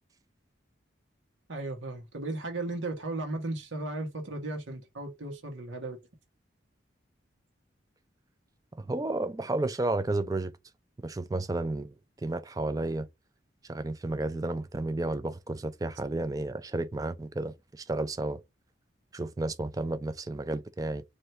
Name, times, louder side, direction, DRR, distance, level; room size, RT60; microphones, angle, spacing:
voice 1, 1.5-6.0, right 2 dB, 85° right, 1.2 m, -35 dB
voice 2, 8.8-10.5 11.0-11.9 12.2-13.1 13.7-18.4 19.1-21.0, right 2 dB, 20° right, 0.3 m, -32 dB
3.3 x 2.6 x 4.3 m
head